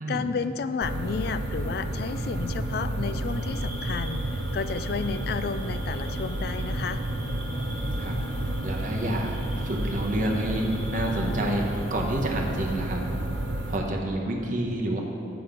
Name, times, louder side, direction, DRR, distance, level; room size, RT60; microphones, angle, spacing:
voice 1, 0.1-7.0, left 5 dB, 55° left, 11 dB, 0.3 m, -32 dB
sound 1, 0.8-13.8, right 1 dB, 75° right, 0.7 m, -31 dB
sound 2, 3.3-11.9, right 1 dB, ahead, 1.7 m, -46 dB
voice 2, 7.6-8.1 8.6-13.0 13.7-15.0, right 1 dB, 45° right, -1 dB, 0.9 m, -29 dB
7.9 x 5.9 x 5.2 m, 2.7 s
head